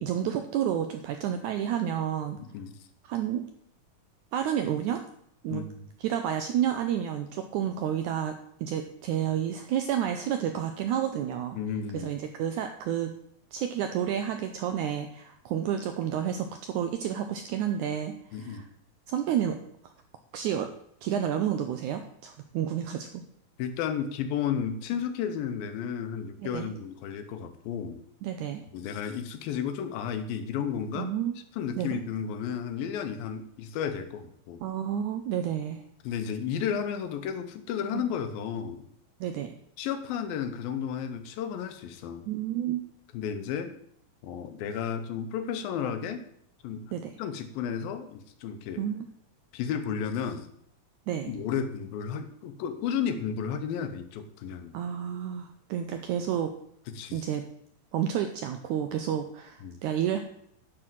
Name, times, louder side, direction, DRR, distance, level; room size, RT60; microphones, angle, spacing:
voice 1, 0.0-2.4 3.0-3.4 4.3-5.0 5.4-5.6 6.0-11.6 11.9-13.1 13.5-18.7 19.1-19.6 19.8-19.9 20.3-20.7 21.0-23.2 26.4-26.7 28.2-28.6 30.9-31.4 31.8-32.0 34.6-35.8 37.9-38.0 39.2-39.5 42.3-42.8 46.9-47.2 48.8-49.1 51.1-51.3 54.7-56.5 57.1-57.5 57.9-60.2, right 9 dB, 85° right, 7 dB, 1.7 m, -30 dB
voice 2, 2.4-2.8 5.5-5.9 11.6-12.1 18.3-18.7 23.6-28.0 28.7-31.1 31.6-34.6 36.0-38.8 39.8-42.3 43.1-43.7 44.2-46.2 46.6-46.9 47.2-48.8 49.5-50.5 51.3-54.7 56.9-57.2 59.6-59.8, left 7 dB, 85° left, 8 dB, 2.7 m, -33 dB
10.0 x 4.5 x 7.4 m, 0.70 s
omnidirectional pair, 4.1 m